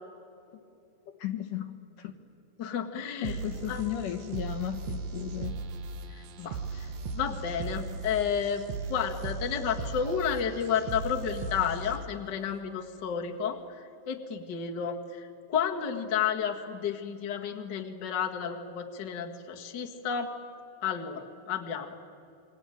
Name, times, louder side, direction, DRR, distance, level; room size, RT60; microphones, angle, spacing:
voice 1, 1.1-2.2 3.2-5.5, left 11 dB, 70° left, 5 dB, 2.9 m, -35 dB
voice 2, 2.6-3.4 3.7-3.8 6.1-8.6 8.9-20.3 20.8-22.1, left 7 dB, 40° left, 3 dB, 1.9 m, -32 dB
sound 1, 3.2-12.2, right 4 dB, 60° right, 2.2 m, -37 dB
27.5 x 23.5 x 9.1 m, 2.5 s
omnidirectional pair, 4.0 m